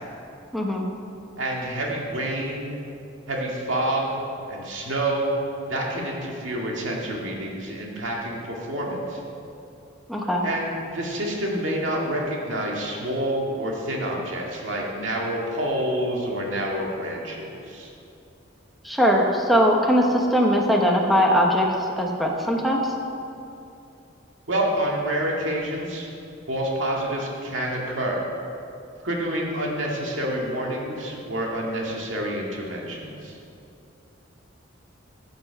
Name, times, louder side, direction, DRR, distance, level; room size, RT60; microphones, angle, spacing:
voice 1, 0.5-0.9 10.1-10.4 18.8-22.9, equal, ahead, -1 dB, 1.1 m, -20 dB
voice 2, 1.4-2.8 3.3-5.4 5.7-9.2 10.4-17.9 24.5-26.1 26.5-28.2 29.0-33.4, right 1 dB, 75° right, -2 dB, 2.0 m, -28 dB
13.5 x 7.9 x 4.6 m, 2.6 s
head